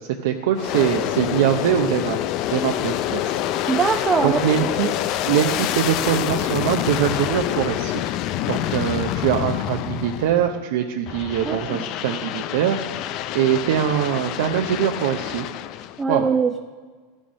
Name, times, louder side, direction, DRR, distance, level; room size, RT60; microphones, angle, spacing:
voice 1, 0.0-2.2 2.5-3.4 4.2-4.9 5.3-8.0 8.5-12.8 13.3-15.5 16.1-16.3, right 10 dB, 70° right, 3 dB, 0.7 m, -22 dB
Aircraft, 0.5-10.6 11.1-16.0, left 12 dB, 50° left, 0.5 m, -27 dB
voice 2, 3.7-4.7 11.4-11.9 16.0-16.6, right 5 dB, 20° right, 6 dB, 0.5 m, -22 dB
14.0 x 6.3 x 6.3 m, 1.5 s
hypercardioid pair, 105°, 0 cm